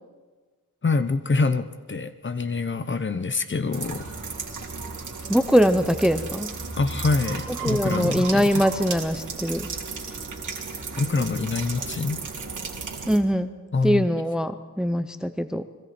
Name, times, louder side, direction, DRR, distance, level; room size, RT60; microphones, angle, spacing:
voice 1, 0.8-4.0 6.8-8.6 11.0-12.2 13.7-14.1, left 4 dB, 35° left, 11 dB, 1.0 m, -25 dB
sound 1, 3.7-13.2, right 4 dB, 65° right, 2.8 m, -34 dB
voice 2, 5.3-6.5 7.6-9.7 13.1-13.5 13.8-15.6, equal, ahead, 11 dB, 0.6 m, -22 dB
30.0 x 22.0 x 4.4 m, 1.3 s
wide cardioid pair, 150°, 32 cm